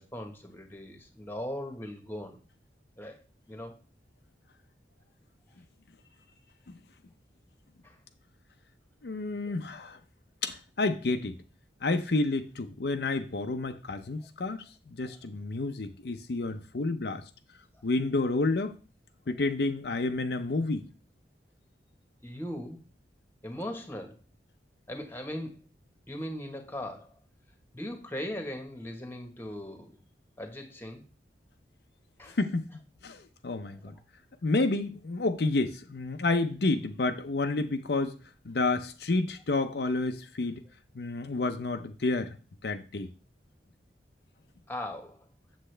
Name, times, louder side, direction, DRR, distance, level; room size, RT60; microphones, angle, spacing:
voice 1, 0.0-2.4 3.0-3.2 3.5-3.8 7.8-8.0 9.5-9.6 15.1-15.2 22.2-22.8 23.4-24.2 24.9-25.7 26.1-27.2 27.7-29.9 30.4-31.0 32.2-32.4 44.7-45.3, left 1 dB, 10° left, 1.2 m, -39 dB
voice 2, 9.0-10.0 10.4-11.4 11.8-17.2 17.8-18.8 19.3-20.9 32.4-32.7 33.0-33.9 34.4-38.1 38.5-40.6 40.9-42.4 42.6-43.1, left 3 dB, 65° left, 0.6 m, -30 dB
7.7 x 7.3 x 3.3 m
head